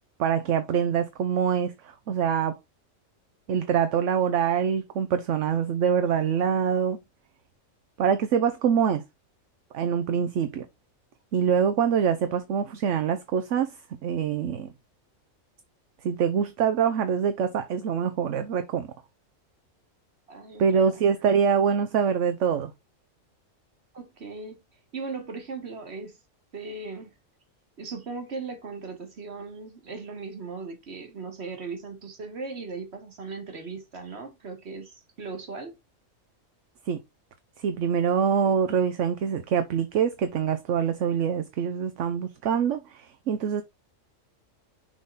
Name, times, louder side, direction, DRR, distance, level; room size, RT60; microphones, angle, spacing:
voice 1, 0.2-2.6 3.5-7.0 8.0-9.0 9.7-10.7 11.3-13.8 14.0-14.7 16.0-18.9 20.6-22.7 36.9-37.0 37.6-43.6, right 7 dB, 70° right, 1.0 m, -25 dB
voice 2, 20.3-21.0 23.9-24.6 24.9-26.2 26.5-27.1 27.8-35.7, right 4 dB, 55° right, 1.8 m, -38 dB
6.4 x 3.7 x 3.9 m
omnidirectional pair, 1.4 m